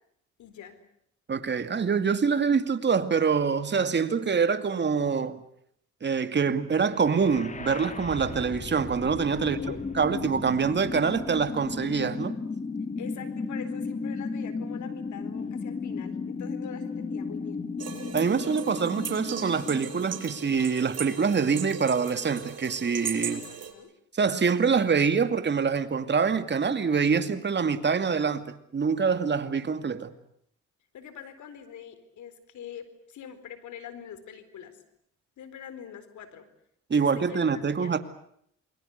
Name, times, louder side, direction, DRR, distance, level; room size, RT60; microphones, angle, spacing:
voice 1, 0.4-0.8 9.3-9.8 13.0-17.6 23.1-23.9 30.9-34.8 35.4-36.4 36.9-38.0, left 8 dB, 75° left, 4.3 m, -44 dB
voice 2, 1.3-5.4 6.0-9.6 10.0-12.3 18.1-23.4 24.1-28.4 28.7-30.1 36.9-38.0, right 5 dB, 35° right, 2.4 m, -25 dB
sound 1, 6.9-20.9, left 4 dB, 25° left, 2.0 m, -35 dB
sound 2, 17.8-23.7, right 7 dB, 55° right, 5.4 m, -38 dB
28.0 x 22.0 x 8.2 m
cardioid pair, 90°, 30 cm